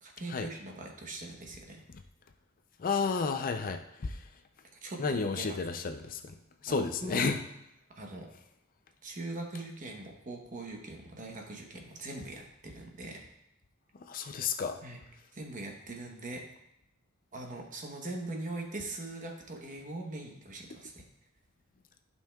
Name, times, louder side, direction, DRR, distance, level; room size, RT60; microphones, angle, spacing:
voice 1, 0.0-1.8 3.6-3.7 4.8-5.6 6.7-7.3 7.9-8.3 9.0-13.2 14.8-15.0 15.3-16.4 17.3-21.0, right 2 dB, 35° right, 1 dB, 1.0 m, -41 dB
voice 2, 2.8-4.2 5.0-6.4 6.6-7.4 14.1-14.8, left 4 dB, 40° left, 7 dB, 0.4 m, -31 dB
11.5 x 5.5 x 2.3 m, 0.81 s
head